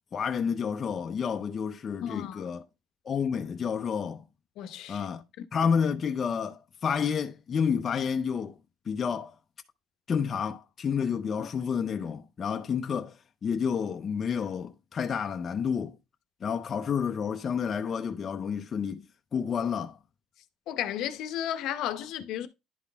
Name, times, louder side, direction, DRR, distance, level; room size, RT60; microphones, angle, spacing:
voice 1, 0.1-2.6 3.1-4.2 4.9-5.2 5.5-8.6 8.9-9.3 10.1-13.1 13.4-16.0 16.4-19.0 19.3-20.0, left 6 dB, 35° left, 0.6 m, -30 dB
voice 2, 2.0-2.5 4.6-5.1 5.4-5.5 11.4-11.5 20.7-22.5, left 11 dB, 70° left, 0.8 m, -34 dB
11.0 x 4.0 x 3.5 m
cardioid pair, 140°, 0 cm